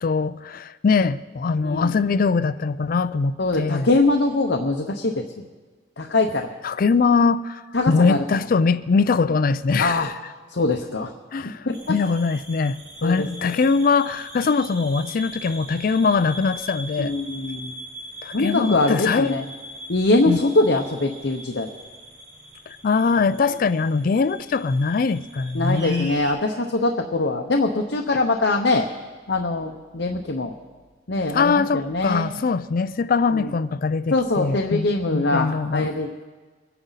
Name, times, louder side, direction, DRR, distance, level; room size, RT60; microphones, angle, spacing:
voice 1, 0.0-3.9 6.6-10.1 11.3-17.1 18.2-19.4 20.3-20.4 22.7-26.1 31.3-35.9, left 4 dB, 50° left, 0.4 m, -22 dB
voice 2, 3.4-5.4 6.0-6.5 7.7-8.2 9.8-10.1 10.5-11.1 11.4-11.9 13.0-13.5 17.0-17.7 18.3-19.5 19.9-21.7 25.5-28.9 29.3-30.5 31.1-32.3 33.3-33.5 34.1-36.3, left 2 dB, 65° left, 0.9 m, -23 dB
sound 1, 11.7-26.3, right 1 dB, 70° right, 3.3 m, -41 dB
24.0 x 10.5 x 4.1 m
head